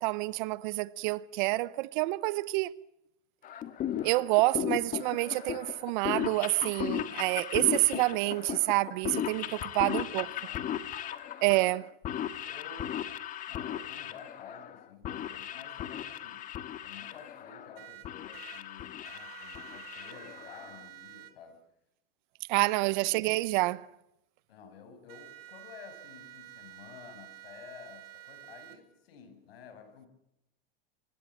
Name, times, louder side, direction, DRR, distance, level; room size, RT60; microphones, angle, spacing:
voice 1, 0.0-2.8 4.0-9.5 9.7-10.3 11.4-11.9 22.5-23.9, right 21 dB, 55° right, 0.9 m, -28 dB
sound 1, 3.4-20.8, left 10 dB, 25° left, 1.7 m, -37 dB
voice 2, 9.4-10.9 12.4-13.0 13.5-16.5 16.8-21.6 22.4-22.5 24.5-30.1, left 6 dB, 90° left, 7.3 m, -52 dB
sound 2, 17.8-18.6 19.0-21.3 25.1-28.8, right 16 dB, 75° right, 3.6 m, -49 dB
25.0 x 21.0 x 7.3 m
supercardioid pair, 155°, 29 cm